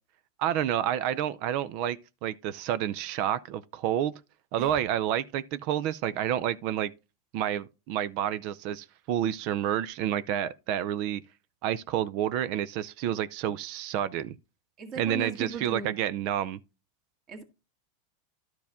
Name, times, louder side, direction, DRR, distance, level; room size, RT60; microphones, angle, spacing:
voice 1, 0.4-4.2 4.5-6.9 7.3-11.2 11.6-14.4 15.0-16.6, right 10 dB, 55° right, 0.5 m, -29 dB
voice 2, 14.8-16.0 17.3-17.4, right 5 dB, 40° right, 1.9 m, -37 dB
12.0 x 4.7 x 3.6 m
supercardioid pair, 130°, 0 cm